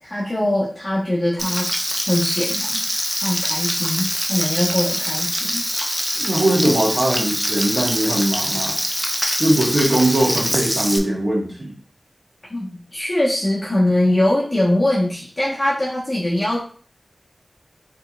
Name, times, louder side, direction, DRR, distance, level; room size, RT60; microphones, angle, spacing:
voice 1, 0.0-1.7 2.0-2.8 3.2-5.6 12.5-16.6, left 1 dB, 30° left, -7 dB, 1.3 m, -22 dB
Frying (food), 1.4-11.0, equal, 10° right, 0.6 m, -24 dB
voice 2, 6.1-8.8 9.4-11.7, right 1 dB, 50° right, -4 dB, 1.5 m, -20 dB
4.4 x 3.3 x 2.5 m, 0.44 s
wide cardioid pair, 55°, 0 cm